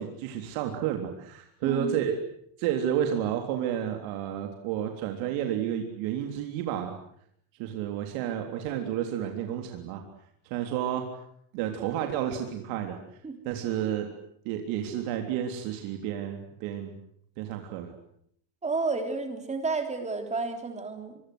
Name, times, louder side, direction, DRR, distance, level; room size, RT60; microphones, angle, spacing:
voice 1, 0.0-2.1 2.6-7.0 7.6-10.0 10.5-11.1 11.5-13.0 13.5-14.1 14.5-16.9 17.4-17.9, right 10 dB, 80° right, 4 dB, 3.6 m, -31 dB
voice 2, 1.6-2.0 13.2-13.4 18.6-21.2, right 4 dB, 15° right, 6 dB, 3.5 m, -31 dB
25.5 x 24.0 x 7.9 m, 0.68 s
cardioid pair, 165°, 48 cm